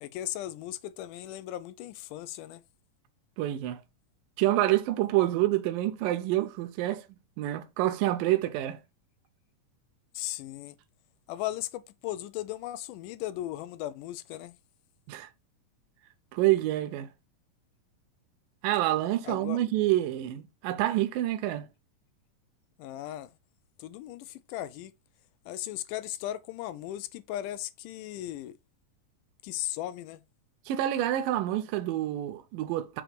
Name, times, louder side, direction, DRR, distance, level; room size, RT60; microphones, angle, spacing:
voice 1, 0.0-2.6 10.2-10.8 11.3-14.6 19.2-19.6 22.8-23.3 23.8-24.9 25.5-28.6 29.4-30.2, left 14 dB, 80° left, 2.0 m, -37 dB
voice 2, 3.4-3.8 4.4-7.0 7.4-8.8 15.1-15.3 16.3-17.1 18.6-21.7 30.7-33.0, right 14 dB, 80° right, 2.2 m, -27 dB
6.2 x 3.0 x 5.0 m
omnidirectional pair, 3.9 m